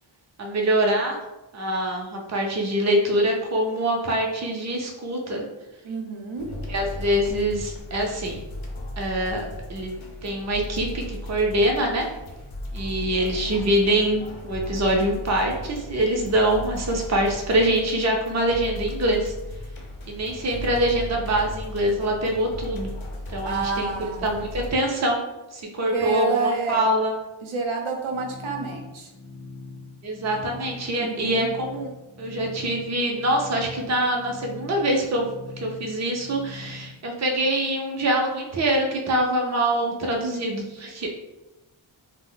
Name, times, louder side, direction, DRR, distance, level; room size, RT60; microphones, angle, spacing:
voice 1, 0.4-1.2 1.5-5.4 6.7-8.4 9.0-9.9 10.2-12.1 12.7-19.3 20.1-22.9 23.3-25.2 25.5-27.2 30.0-31.9 32.2-35.3 35.6-41.1, right 1 dB, 35° right, 0 dB, 0.5 m, -24 dB
voice 2, 5.8-6.5 23.4-24.3 25.9-26.8 27.4-29.1 31.0-31.5, right 4 dB, 85° right, 1 dB, 0.6 m, -28 dB
sound 1, 6.4-24.7, left 1 dB, 85° left, 0.6 m, -36 dB
sound 2, 28.1-36.9, left 3 dB, 40° left, 0.6 m, -42 dB
2.4 x 2.0 x 3.7 m, 1.0 s
wide cardioid pair, 80°, 47 cm